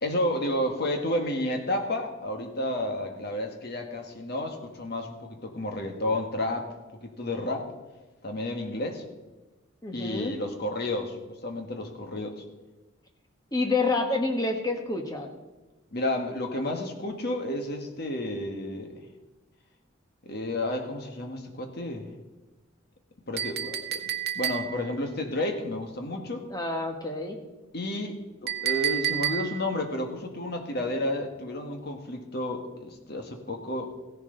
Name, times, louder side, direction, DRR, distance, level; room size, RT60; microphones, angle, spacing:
voice 1, 0.0-6.7 7.0-7.7 8.2-9.0 9.9-11.2 11.4-12.4 15.9-19.1 20.2-22.1 23.3-26.4 27.7-33.9, left 1 dB, 50° left, 4 dB, 1.5 m, -31 dB
voice 2, 9.8-10.3 13.5-15.3 26.5-27.4, left 3 dB, 20° left, 3 dB, 1.3 m, -28 dB
Chink clink, 23.4-24.9 28.5-29.7, right 11 dB, 50° right, 0.8 m, -30 dB
15.5 x 10.5 x 3.9 m, 1.1 s
head